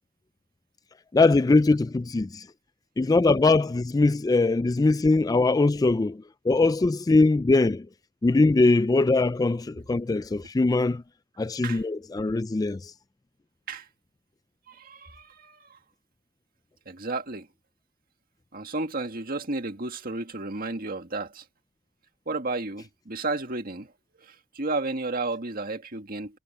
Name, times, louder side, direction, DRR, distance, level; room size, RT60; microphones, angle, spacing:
voice 1, 1.1-2.5 3.0-7.9 8.2-11.0 11.4-12.9, left 3 dB, 20° left, 0.3 m, -22 dB
voice 2, 14.7-15.8 16.9-17.5 18.5-21.4 22.3-23.9 24.2-26.4, right 3 dB, 50° right, 2.0 m, -32 dB
head